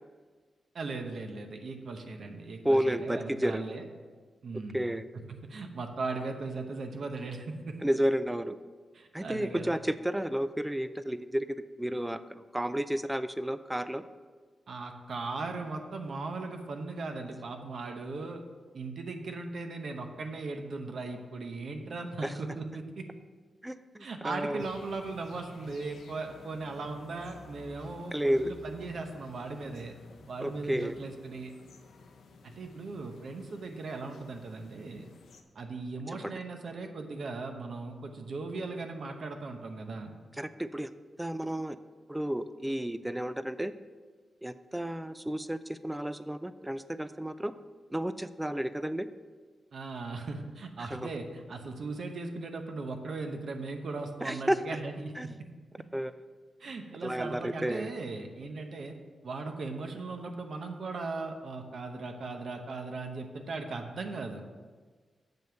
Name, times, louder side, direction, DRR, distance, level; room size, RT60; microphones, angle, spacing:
voice 1, 0.7-3.9 4.4-4.8 5.3-7.8 8.9-9.7 14.7-18.4 18.7-23.1 24.0-30.0 30.3-31.5 32.4-35.1 35.5-40.1 49.7-55.5 56.6-58.9 59.2-64.4, right 3 dB, 55° right, 4 dB, 0.8 m, -38 dB
voice 2, 2.6-3.6 4.7-5.1 7.8-8.6 9.1-14.0 22.2-22.3 23.6-24.7 28.1-28.5 30.4-30.9 36.2-36.3 40.4-40.9 41.2-41.8 42.1-43.7 44.4-47.5 47.9-49.1 50.9-51.1 54.2-54.6 55.2-55.3 55.9-56.1 57.0-57.9, equal, 5° right, 13 dB, 0.3 m, -31 dB
sound 1, 24.6-35.4, left 3 dB, 90° left, 0.8 m, -53 dB
7.7 x 5.3 x 6.8 m, 1.5 s
wide cardioid pair, 165°, 0 cm